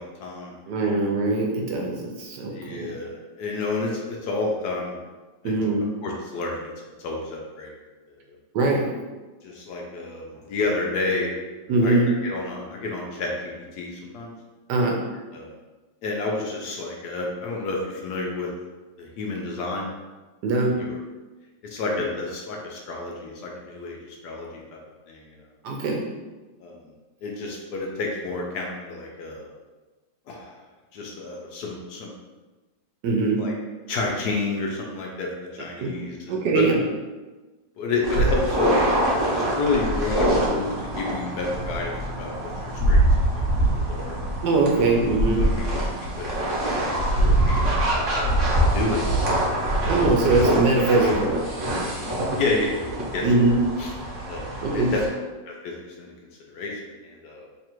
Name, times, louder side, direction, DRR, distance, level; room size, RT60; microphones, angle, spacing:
voice 1, 0.0-0.6 2.5-5.0 5.4-5.6 6.0-7.7 8.1-8.2 9.4-11.3 11.8-13.3 13.7-14.3 15.3-15.5 16.0-18.5 19.0-19.9 20.8-21.0 21.6-24.6 25.1-25.2 26.6-26.8 27.2-29.5 30.3-30.6 30.9-32.1 33.4-33.5 33.9-36.7 37.8-38.9 39.2-43.4 43.7-44.2 45.4-45.8 46.1-46.8 47.1-49.4 51.0-51.1 52.3-52.7 53.1-53.5 53.8-53.9 54.3-55.0 55.5-56.1 56.5-57.5, left 3 dB, 70° left, -1 dB, 1.1 m, -30 dB
voice 2, 0.7-3.0 5.4-5.8 8.5-8.9 11.7-12.1 14.7-15.0 20.4-20.8 25.6-26.0 33.0-33.4 35.8-35.9 36.3-36.8 44.4-45.4 49.9-51.4 53.2-53.6 54.6-54.9, right 3 dB, 70° right, 0 dB, 1.2 m, -22 dB
sound 1, 38.0-55.1, right 1 dB, 50° right, 1.0 m, -24 dB
3.3 x 2.4 x 4.4 m, 1.2 s
omnidirectional pair, 2.0 m